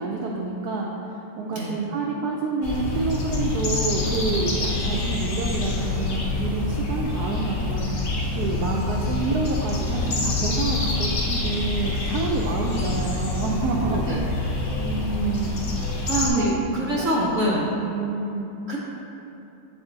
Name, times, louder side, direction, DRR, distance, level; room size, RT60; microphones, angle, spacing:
voice 1, 0.0-14.1 14.8-15.6 16.4-16.5 16.8-17.3 17.8-18.5, right 3 dB, 90° right, -2 dB, 0.8 m, -28 dB
sound 1, 2.6-16.3, left 2 dB, 50° left, 1.0 m, -26 dB
voice 2, 13.9-14.2 16.1-17.7 18.7-18.8, right 1 dB, 55° right, -5 dB, 0.8 m, -24 dB
7.0 x 4.1 x 3.8 m, 2.9 s
omnidirectional pair, 2.2 m